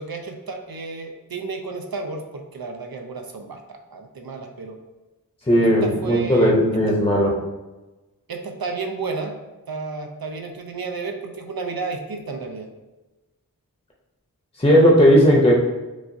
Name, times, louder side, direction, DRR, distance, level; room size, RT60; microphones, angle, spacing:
voice 1, 0.0-4.8 5.6-6.6 6.9-7.0 8.3-9.3 9.7-12.7, right 4 dB, 75° right, 4 dB, 0.6 m, -32 dB
voice 2, 5.5-7.3 14.6-15.5, equal, 20° left, -3 dB, 0.7 m, -16 dB
7.1 x 2.5 x 2.7 m, 1.1 s
wide cardioid pair, 45°, 36 cm